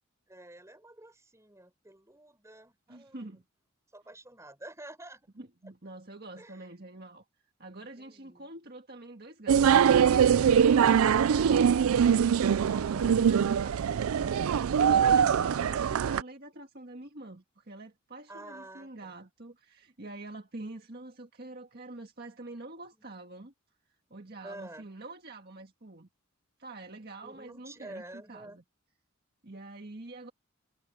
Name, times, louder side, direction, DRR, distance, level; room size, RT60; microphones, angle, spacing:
voice 1, 0.3-3.4 3.9-5.3 6.4-6.7 8.0-8.5 14.8-15.2 18.3-19.2 23.0-23.1 24.4-24.9 27.2-28.6, right 1 dB, 15° right, 5.5 m, -49 dB
voice 2, 2.9-3.4 5.4-7.2 7.6-10.1 10.4-23.5 24.1-26.1 26.6-28.6 29.4-30.3, right 2 dB, 45° right, 1.8 m, -46 dB
sound 1, 9.5-16.2, right 7 dB, 85° right, 0.4 m, -23 dB
head